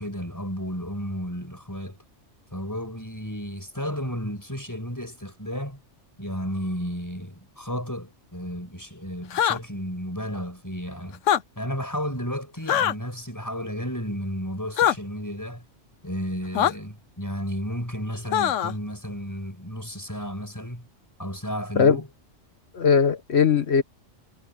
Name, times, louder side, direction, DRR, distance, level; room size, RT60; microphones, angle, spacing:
voice 1, 0.0-2.0 2.5-5.8 6.2-11.2 11.6-15.6 16.0-20.9 21.2-22.1, equal, 15° left, 5.6 m, -33 dB
sound 1, 9.3-9.6 11.2-11.4 12.7-12.9 14.8-15.0 16.6-16.7 18.3-18.7, left 10 dB, 80° left, 1.1 m, -21 dB
voice 2, 22.7-23.8, left 6 dB, 60° left, 1.4 m, -19 dB
omnidirectional pair, 1.3 m